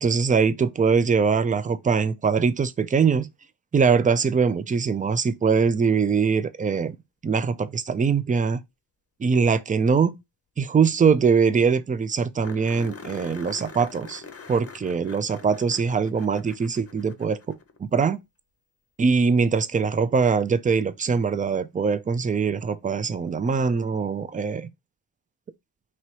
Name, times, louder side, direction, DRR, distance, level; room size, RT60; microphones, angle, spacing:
voice 1, 0.0-3.3 3.7-7.0 7.2-8.6 9.2-10.1 10.6-14.2 14.5-17.6 17.8-18.2 19.0-24.7, right 5 dB, 20° right, 0.3 m, -22 dB
sound 1, 11.0-11.1 11.3-11.4 11.7-11.8 12.4-17.8 20.2-20.3 23.1-23.2, left 4 dB, 35° left, 0.7 m, -44 dB
2.9 x 2.9 x 4.5 m
cardioid pair, 80°, 43 cm